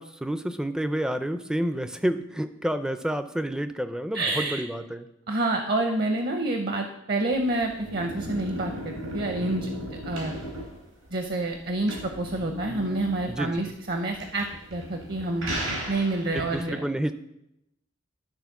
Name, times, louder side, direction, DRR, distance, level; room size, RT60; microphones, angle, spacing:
voice 1, 0.0-5.1 13.3-13.6 16.3-17.1, right 1 dB, 5° right, 10 dB, 0.4 m, -29 dB
voice 2, 4.1-4.6 5.3-10.3 11.1-15.5 15.9-16.8, right 2 dB, 50° right, 5 dB, 0.7 m, -28 dB
sound 1, 7.3-16.6, equal, 85° right, 4.0 m, -36 dB
12.0 x 4.1 x 5.8 m, 0.86 s
head